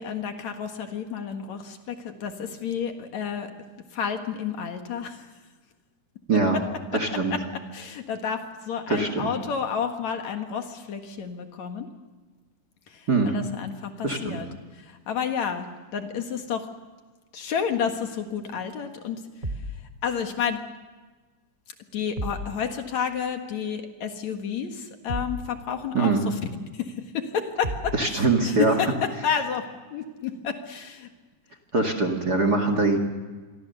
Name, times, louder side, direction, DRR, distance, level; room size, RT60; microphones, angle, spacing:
voice 1, 0.0-3.5 3.9-5.3 6.5-6.6 6.9-7.0 7.3-7.4 7.7-11.9 12.9-14.5 14.7-15.7 15.9-16.7 17.3-19.5 20.0-20.6 21.9-31.1, left 7 dB, 65° left, 5 dB, 2.8 m, -30 dB
voice 2, 6.9-7.3 8.9-9.3 13.1-13.4 14.0-14.4 25.9-26.2 27.9-28.7 31.7-33.0, right 3 dB, 35° right, 7 dB, 2.1 m, -22 dB
sound 1, 19.4-19.8 22.2-22.5 25.1-25.5 27.6-28.0, right 1 dB, 20° right, 1.4 m, -32 dB
27.5 x 23.0 x 6.9 m, 1.4 s
omnidirectional pair, 3.7 m